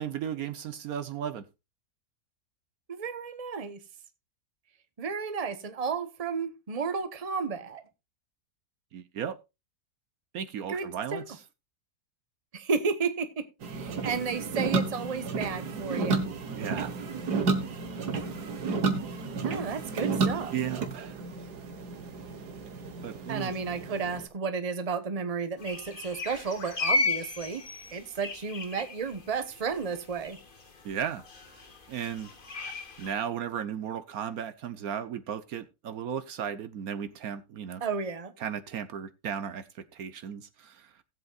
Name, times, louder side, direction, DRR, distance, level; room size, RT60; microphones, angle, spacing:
voice 1, 0.0-1.4 8.9-9.4 10.3-11.4 16.4-16.9 20.5-21.2 23.0-23.5 30.8-31.2 31.9-32.3 33.0-37.8 38.4-40.9, right 8 dB, 70° right, 1.2 m, -35 dB
voice 2, 2.9-3.8 5.0-7.8 10.7-11.2 12.5-16.2 19.4-20.5 23.3-27.6 27.9-30.4 37.8-38.3, right 5 dB, 25° right, 1.0 m, -32 dB
sound 1, 13.6-24.2, right 4 dB, 90° right, 2.0 m, -32 dB
sound 2, 25.6-33.2, left 2 dB, 35° left, 1.5 m, -35 dB
18.0 x 8.0 x 2.4 m
omnidirectional pair, 1.7 m